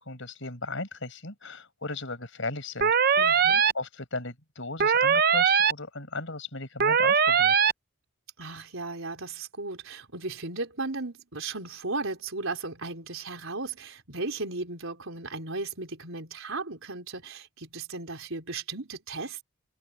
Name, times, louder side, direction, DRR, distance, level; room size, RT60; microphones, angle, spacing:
voice 1, 0.0-3.2 3.5-7.5, left 3 dB, 60° left, 6.6 m, -36 dB
sound 1, 2.8-3.7 4.8-5.7 6.8-7.7, right 6 dB, 45° right, 0.7 m, -21 dB
voice 2, 3.2-3.7 8.4-19.4, right 3 dB, 70° right, 4.3 m, -36 dB
head